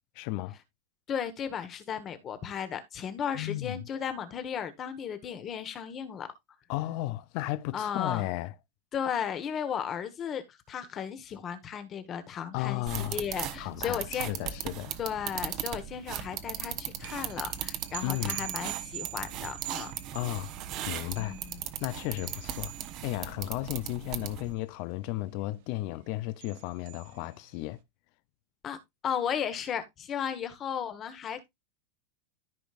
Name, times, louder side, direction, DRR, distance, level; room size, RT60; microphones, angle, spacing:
voice 1, 0.2-0.6 3.3-3.8 6.7-8.5 12.5-13.2 13.6-14.9 18.0-18.5 20.1-20.5 20.9-21.4 21.8-22.7 23.0-27.8, left 17 dB, 45° left, 0.5 m, -34 dB
voice 2, 1.1-6.3 7.7-8.3 8.9-14.3 15.0-19.9 21.2-21.6 28.6-28.8 29.0-31.5, left 8 dB, 20° left, 1.3 m, -35 dB
sound 1, 12.9-24.5, right 11 dB, 35° right, 1.0 m, -38 dB
sound 2, 17.0-27.7, right 15 dB, 55° right, 1.0 m, -45 dB
14.0 x 5.2 x 2.5 m
supercardioid pair, 165°, 0 cm